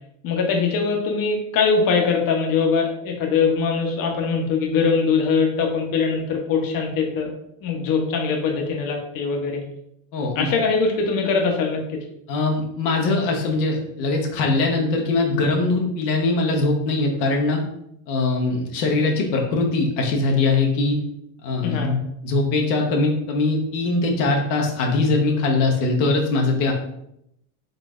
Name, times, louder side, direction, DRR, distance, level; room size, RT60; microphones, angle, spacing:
voice 1, 0.2-7.3 7.6-9.6 10.4-11.8 21.6-21.9, left 5 dB, 45° left, 2 dB, 0.8 m, -22 dB
voice 2, 10.1-10.5 12.3-17.6 18.1-21.0 21.4-22.0 22.2-26.7, left 3 dB, 80° left, 1 dB, 1.0 m, -21 dB
3.9 x 3.2 x 2.4 m, 0.77 s
supercardioid pair, 105°, 50 cm